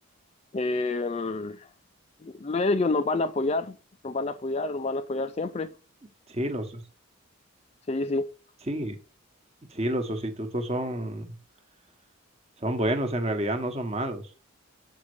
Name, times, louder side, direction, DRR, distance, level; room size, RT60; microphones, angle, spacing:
voice 1, 0.5-1.7 2.2-3.8 4.0-5.7 7.9-8.3, left 3 dB, 30° left, 0.4 m, -28 dB
voice 2, 6.3-6.8 8.7-8.9 9.7-11.3 12.6-14.2, right 1 dB, 30° right, 1.2 m, -29 dB
7.3 x 5.3 x 4.8 m
head